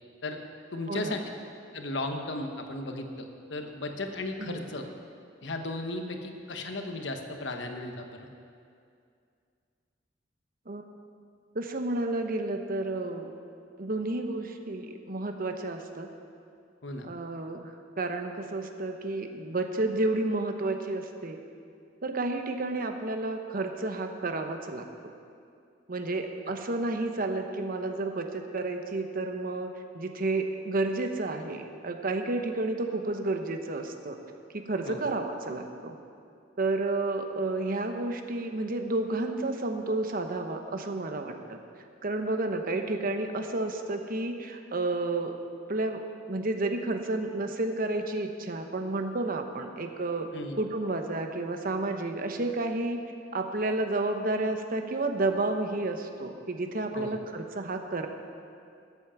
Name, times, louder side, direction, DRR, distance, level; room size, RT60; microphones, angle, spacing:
voice 1, 0.7-1.2 1.7-4.8 5.4-8.3 16.8-17.1 34.9-35.0 50.3-50.6 56.9-57.1, left 2 dB, 70° left, 4 dB, 1.2 m, -35 dB
voice 2, 11.5-13.3 13.8-16.1 17.0-17.7 18.0-21.4 22.0-25.1 25.9-34.2 34.5-36.0 36.6-41.6 42.0-45.4 45.7-46.0 46.3-50.3 50.6-53.0 53.3-58.1, right 2 dB, 50° right, 5 dB, 1.0 m, -31 dB
14.0 x 8.3 x 7.1 m, 2.4 s
head